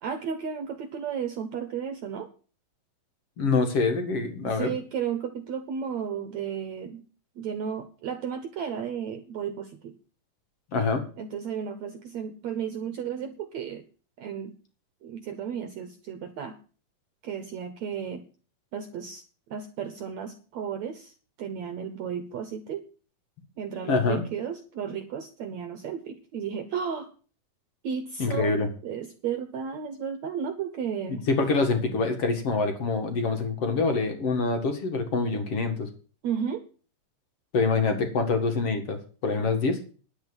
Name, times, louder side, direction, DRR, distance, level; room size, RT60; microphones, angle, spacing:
voice 1, 0.0-2.3 4.4-7.0 7.4-9.9 11.2-13.8 14.2-14.6 15.0-16.6 17.2-18.3 18.7-19.2 19.5-21.1 21.4-22.8 23.6-27.1 27.8-28.5 28.8-31.2 36.2-36.6, right 7 dB, 60° right, 8 dB, 2.0 m, -33 dB
voice 2, 3.4-4.7 10.7-11.0 23.9-24.2 28.2-28.7 31.1-35.9 37.5-39.8, left 4 dB, 45° left, 6 dB, 2.7 m, -25 dB
10.5 x 8.9 x 7.1 m, 0.38 s
omnidirectional pair, 4.2 m